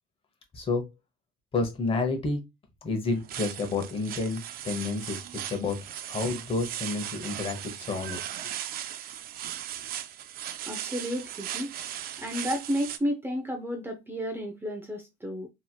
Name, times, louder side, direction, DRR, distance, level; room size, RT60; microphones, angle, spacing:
voice 1, 0.5-0.9 1.5-2.4 2.8-8.5, left 3 dB, 35° left, 0.9 m, -30 dB
sound 1, 3.1-13.0, right 11 dB, 60° right, 0.4 m, -38 dB
voice 2, 10.7-11.7 12.2-15.5, equal, 15° right, 0.6 m, -32 dB
3.1 x 2.8 x 2.3 m
cardioid pair, 110°, 17 cm